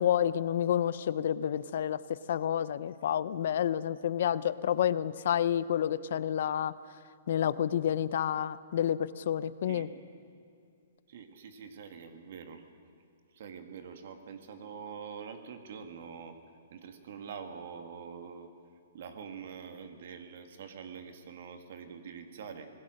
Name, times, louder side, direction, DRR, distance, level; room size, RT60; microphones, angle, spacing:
voice 1, 0.0-2.0 2.3-6.7 7.3-9.9, left 10 dB, 60° left, 16 dB, 0.6 m, -29 dB
voice 2, 11.1-12.6 13.3-16.4 16.7-18.5 18.9-22.7, right 6 dB, 60° right, 7 dB, 2.0 m, -45 dB
26.0 x 18.5 x 6.5 m, 2.5 s
hypercardioid pair, 150°, 0 cm